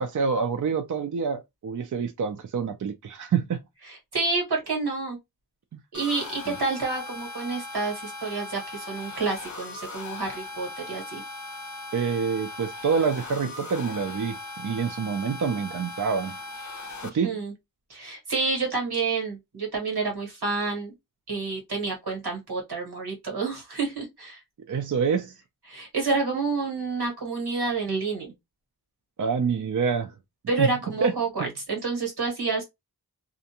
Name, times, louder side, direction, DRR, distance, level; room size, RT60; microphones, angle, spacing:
voice 1, 0.0-3.6 6.5-6.6 11.9-16.4 17.1-17.4 24.7-25.4 29.2-30.1 30.6-31.5, right 6 dB, 55° right, 0.4 m, -27 dB
voice 2, 3.9-5.2 5.9-11.2 17.0-17.5 17.9-20.9 21.3-24.4 25.7-28.3 30.5-32.6, right 4 dB, 85° right, 1.4 m, -29 dB
sound 1, 5.9-17.1, left 3 dB, 50° left, 0.6 m, -39 dB
2.5 x 2.1 x 2.8 m
wide cardioid pair, 65°, 38 cm